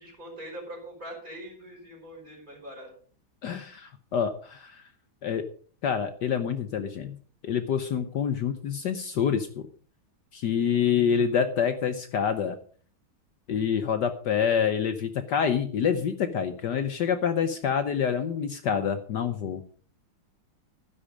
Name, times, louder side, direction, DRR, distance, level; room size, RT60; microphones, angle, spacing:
voice 1, 0.0-2.9, equal, 20° right, -2 dB, 5.3 m, -42 dB
voice 2, 3.4-4.8 5.2-5.5 5.8-7.2 7.4-9.7 10.3-12.6 13.5-19.6, left 7 dB, 65° left, 9 dB, 1.4 m, -27 dB
12.0 x 10.5 x 5.0 m, 0.44 s
omnidirectional pair, 2.2 m